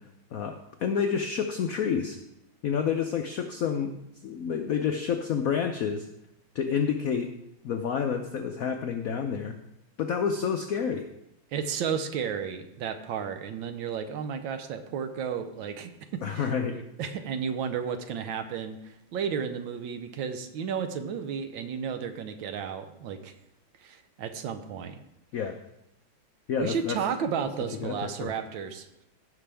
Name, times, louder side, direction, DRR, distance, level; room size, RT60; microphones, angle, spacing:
voice 1, 0.3-2.2 2.6-6.1 6.5-7.3 7.6-9.6 10.0-11.1 16.2-16.8 25.3-25.6 26.5-27.0 27.8-28.3, left 7 dB, 90° left, 5 dB, 0.7 m, -29 dB
voice 2, 11.5-23.3 23.8-24.9 26.6-28.9, right 7 dB, 70° right, 8 dB, 1.5 m, -33 dB
15.5 x 6.0 x 3.4 m, 0.85 s
omnidirectional pair, 2.3 m